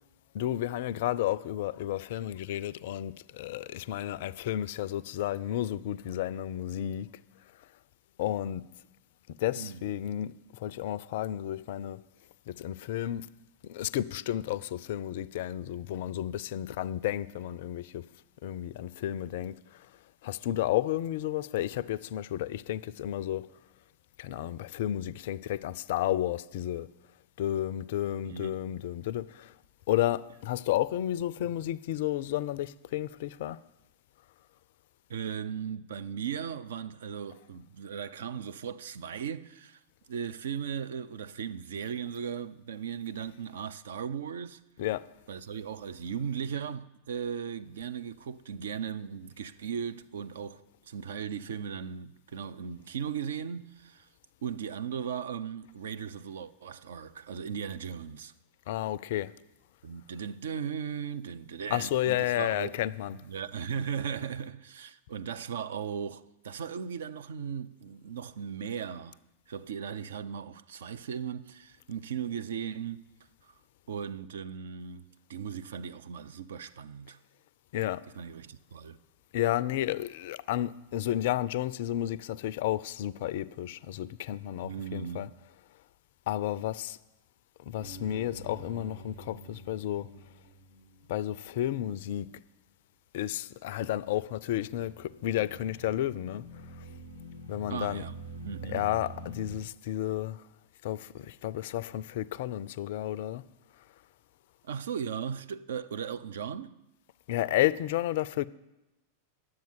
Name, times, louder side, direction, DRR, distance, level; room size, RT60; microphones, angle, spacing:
voice 1, 0.3-7.1 8.2-8.6 9.3-12.0 12.5-13.3 13.6-18.0 18.4-19.9 20.2-23.5 24.2-26.9 27.4-29.5 29.9-33.6 44.8-45.0 58.7-59.3 61.7-63.2 77.7-78.0 79.3-85.3 86.3-87.0 87.6-90.1 91.1-92.3 93.1-96.5 97.5-98.0 98.6-100.4 100.8-103.4 107.3-108.5, left 13 dB, 55° left, 0.3 m, -32 dB
voice 2, 28.2-28.6 31.4-31.5 35.1-39.8 40.1-44.6 45.3-54.1 54.4-58.3 59.8-62.8 63.1-69.2 69.5-73.1 73.4-73.5 73.9-77.2 78.1-79.0 84.6-85.4 97.7-98.2 98.4-98.8 104.6-106.8, right 7 dB, 60° right, 0.4 m, -37 dB
sound 1, 87.8-92.0 94.5-99.6, right 1 dB, 80° right, 1.3 m, -46 dB
10.5 x 7.6 x 7.1 m
figure-of-eight pair, 90°, 0 cm